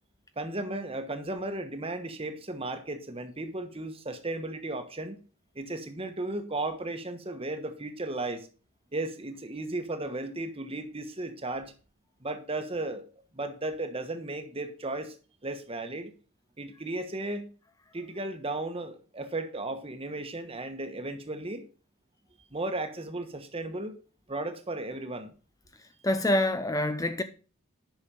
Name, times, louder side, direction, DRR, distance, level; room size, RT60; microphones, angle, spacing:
voice 1, 0.4-5.2 5.5-8.5 8.9-11.7 12.2-13.0 13.3-15.2 15.4-16.1 16.6-17.5 17.9-21.7 22.5-24.0 24.3-25.3, right 2 dB, 25° right, 1.2 m, -35 dB
voice 2, 26.0-27.2, left 1 dB, 15° left, 0.6 m, -26 dB
10.5 x 6.2 x 5.3 m
head